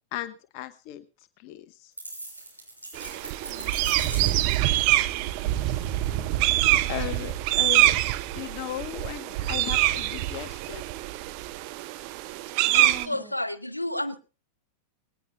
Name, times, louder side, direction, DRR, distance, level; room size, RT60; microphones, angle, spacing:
voice 1, 0.1-1.0 1.4-1.9 6.9-8.0 8.3-10.8, left 13 dB, 45° left, 11 dB, 1.1 m, -36 dB
sound 1, 2.0-4.8, right 1 dB, 90° right, 6.3 m, -40 dB
sound 2, 2.9-13.1, right 16 dB, 45° right, 0.8 m, -25 dB
voice 2, 3.5-4.4 4.9-6.9 12.6-13.3, right 4 dB, 15° right, 6 dB, 6.3 m, -47 dB
voice 3, 12.7-14.2, left 1 dB, 85° left, 12 dB, 1.0 m, -31 dB
20.0 x 18.0 x 2.3 m, 0.34 s
figure-of-eight pair, 90°, 0 cm